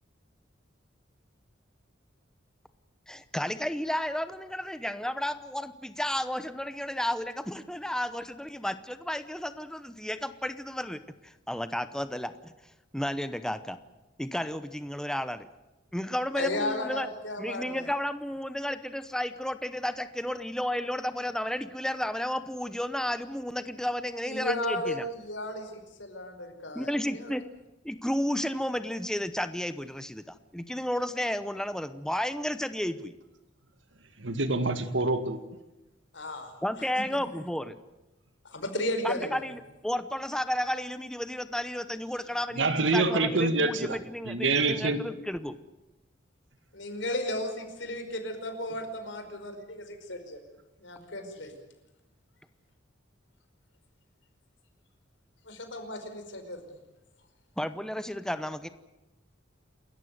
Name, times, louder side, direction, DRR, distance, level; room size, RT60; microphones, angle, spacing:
voice 1, 3.1-12.5 12.9-13.8 14.2-15.5 15.9-17.1 17.4-25.1 26.7-27.4 27.8-33.1 36.6-37.8 39.0-45.6 57.6-58.7, left 1 dB, 5° left, 11 dB, 0.8 m, -32 dB
voice 2, 16.4-17.9 24.2-25.7 26.0-27.4 36.1-36.5 38.5-39.3 46.7-50.4 50.8-51.5 55.5-56.6, left 1 dB, 80° left, 6 dB, 5.1 m, -34 dB
voice 3, 34.2-35.4 42.6-44.0 44.3-45.0, right 3 dB, 85° right, 10 dB, 2.1 m, -26 dB
28.0 x 14.5 x 9.4 m, 1.0 s
head